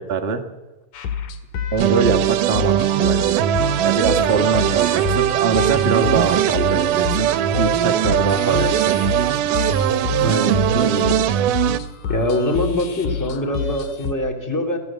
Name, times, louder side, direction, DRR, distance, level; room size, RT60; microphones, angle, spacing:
voice 1, 0.1-0.4 1.7-3.4 3.8-7.3 7.6-8.7 9.2-9.3, right 5 dB, 30° right, 5 dB, 1.1 m, -23 dB
sound 1, 0.9-14.1, left 7 dB, 75° left, 3.3 m, -29 dB
sound 2, 1.8-11.8, right 11 dB, 75° right, 2.4 m, -20 dB
voice 2, 8.5-8.8 10.2-11.1 12.1-14.8, equal, 5° left, 3 dB, 2.5 m, -23 dB
26.5 x 17.5 x 7.6 m, 1.2 s
omnidirectional pair, 3.9 m